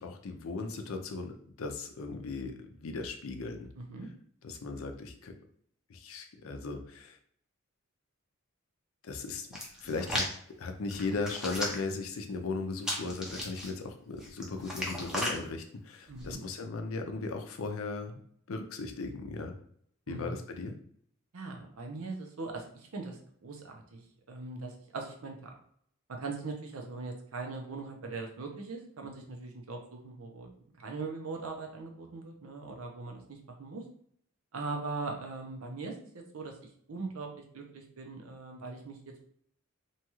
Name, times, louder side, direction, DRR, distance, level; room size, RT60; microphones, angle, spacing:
voice 1, 0.0-3.7 4.4-5.3 5.9-7.2 9.0-9.5 9.8-10.2 10.6-18.2 18.5-19.5 20.1-20.7, left 3 dB, 70° left, 4 dB, 0.5 m, -37 dB
voice 2, 3.8-4.1 16.1-16.4 20.1-20.4 21.3-25.5 26.1-30.5 30.8-33.8 34.5-39.2, right 3 dB, 85° right, 2 dB, 0.7 m, -41 dB
Hands, 9.5-10.3 10.9-11.9 12.8-13.7 14.2-15.4 16.1-16.3, left 1 dB, 5° right, 0.5 m, -35 dB
2.8 x 2.3 x 3.0 m, 0.64 s
head